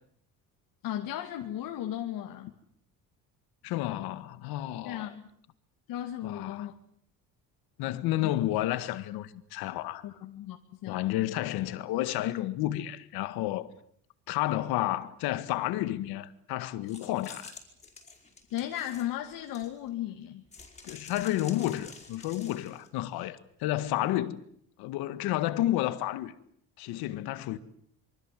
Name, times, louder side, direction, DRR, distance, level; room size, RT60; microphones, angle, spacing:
voice 1, 0.8-2.5 4.8-5.3 5.9-6.7 8.2-8.3 10.0-11.2 18.5-20.5 24.0-24.1, left 12 dB, 70° left, 2.3 m, -36 dB
voice 2, 3.6-5.1 6.2-6.7 7.8-10.0 10.8-13.7 14.3-17.5 20.8-24.4 24.8-26.3 26.8-27.6, left 14 dB, 85° left, 1.8 m, -31 dB
sound 1, 16.9-19.9 20.5-22.9, left 4 dB, 20° left, 4.9 m, -49 dB
27.0 x 24.5 x 7.6 m
cardioid pair, 145°, 37 cm